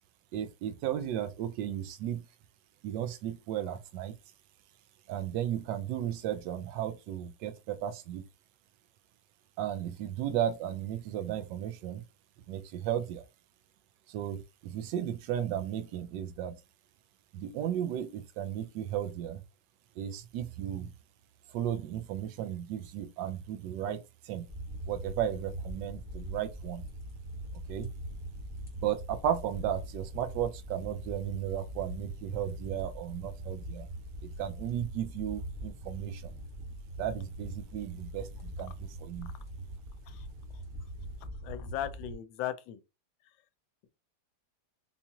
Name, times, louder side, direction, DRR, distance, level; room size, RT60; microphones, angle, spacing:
voice 1, 0.3-2.2 2.8-4.1 5.1-8.2 9.6-12.0 12.5-13.2 14.1-16.6 17.3-19.4 20.0-20.9 21.5-24.5 24.9-26.8 27.7-27.9 28.8-33.9 34.2-36.3 37.0-39.3, right 10 dB, 75° right, 1.1 m, -35 dB
sound 1, 24.5-42.1, right 1 dB, 5° right, 0.7 m, -42 dB
voice 2, 41.4-42.8, left 11 dB, 80° left, 1.3 m, -37 dB
4.1 x 2.4 x 2.8 m
omnidirectional pair, 2.1 m